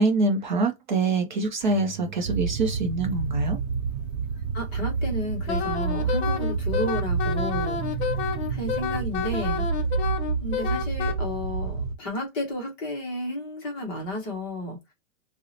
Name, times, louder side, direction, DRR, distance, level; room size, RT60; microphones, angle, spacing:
voice 1, 0.0-3.6, right 2 dB, 40° right, 0.5 m, -25 dB
sound 1, 1.6-8.9, right 14 dB, 25° right, 1.1 m, -42 dB
sound 2, 2.2-12.0, right 5 dB, 80° right, 0.6 m, -29 dB
voice 2, 4.5-7.8 8.1-9.7 10.4-14.9, left 1 dB, 20° left, 0.6 m, -32 dB
Wind instrument woodwind instrument, 5.5-11.1, left 8 dB, 55° left, 0.7 m, -30 dB
2.7 x 2.0 x 3.8 m
supercardioid pair, 170°, 39 cm